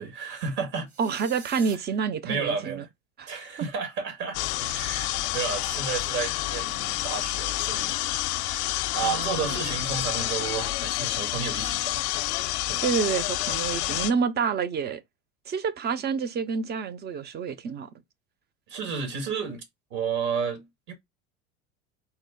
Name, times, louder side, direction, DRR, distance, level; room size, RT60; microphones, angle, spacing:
voice 1, 0.0-0.9 1.5-1.6 2.2-2.9 3.3-8.0 8.4-12.0 12.7-12.8 18.7-19.6 19.9-20.9, right 6 dB, 65° right, 1.8 m, -32 dB
sound 1, 0.9-1.7, right 5 dB, 50° right, 1.3 m, -45 dB
voice 2, 1.0-2.8 3.2-3.3 5.1-5.2 9.0-9.8 12.8-15.0 15.5-17.9, right 6 dB, 30° right, 0.5 m, -28 dB
sound 2, 4.3-14.1, left 16 dB, 65° left, 0.5 m, -29 dB
4.2 x 2.0 x 3.6 m
supercardioid pair, 100°, 34 cm